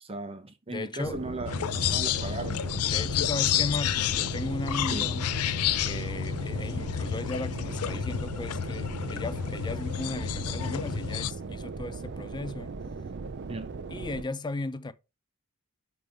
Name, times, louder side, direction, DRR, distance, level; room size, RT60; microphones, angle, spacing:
voice 1, 0.0-2.6 4.9-5.0 13.5-13.7, right 2 dB, 25° right, 0.8 m, -37 dB
voice 2, 0.7-1.2 2.8-5.3 5.8-12.7 13.9-14.9, left 2 dB, 20° left, 0.4 m, -36 dB
sound 1, 1.0-14.2, right 4 dB, 55° right, 0.5 m, -38 dB
sound 2, 1.5-11.3, left 10 dB, 90° left, 0.4 m, -30 dB
10.5 x 3.5 x 3.4 m
head